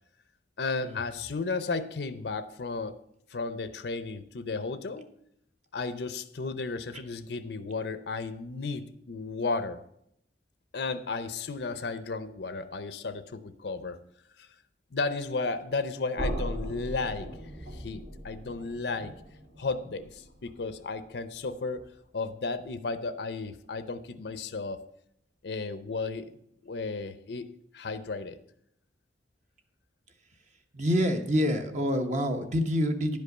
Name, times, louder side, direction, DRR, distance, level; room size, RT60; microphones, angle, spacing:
voice 1, 0.6-3.0 3.3-5.1 5.7-9.8 10.7-14.0 14.4-14.5 14.9-17.4 17.7-19.1 19.6-21.8 22.1-24.9 25.4-26.3 26.6-28.4, left 3 dB, 65° left, 12 dB, 0.6 m, -34 dB
sound 1, 16.2-22.1, equal, 75° right, 2.4 m, -39 dB
voice 2, 30.7-33.2, equal, 45° right, 5 dB, 1.0 m, -27 dB
10.5 x 5.3 x 6.6 m, 0.76 s
head